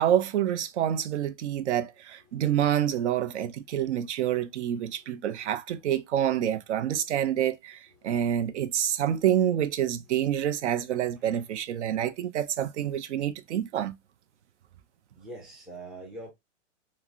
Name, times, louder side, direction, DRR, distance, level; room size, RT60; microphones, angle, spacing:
voice 1, 0.0-13.9, right 10 dB, 70° right, 0.5 m, -27 dB
voice 2, 4.9-5.4 8.0-8.4 11.2-11.6 11.9-12.1 15.1-16.3, right 2 dB, ahead, 0.3 m, -46 dB
3.6 x 2.0 x 2.3 m
hypercardioid pair, 120°, 36 cm